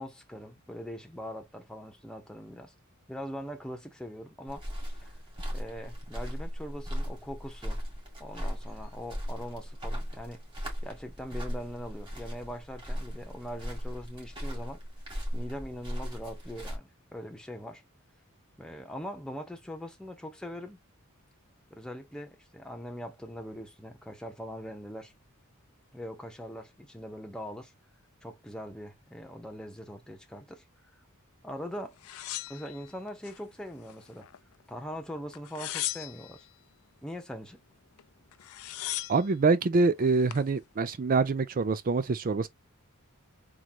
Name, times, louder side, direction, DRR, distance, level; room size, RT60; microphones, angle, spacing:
voice 1, 0.0-2.7 3.1-5.1 5.5-7.8 8.2-10.4 10.8-14.8 15.3-17.8 18.6-20.8 21.7-25.1 25.9-27.7 28.2-30.6 31.4-32.0 32.5-34.3 34.7-36.5 37.0-37.6, equal, 5° left, 0.9 m, -41 dB
sound 1, 4.5-16.8, equal, 20° right, 2.3 m, -37 dB
sound 2, 32.0-33.4 33.8-34.6 35.3-36.4 38.0-38.1 38.3-39.3 40.0-40.5, left 14 dB, 80° left, 0.5 m, -38 dB
voice 2, 39.1-42.5, right 4 dB, 40° right, 0.4 m, -25 dB
3.8 x 3.1 x 2.9 m
head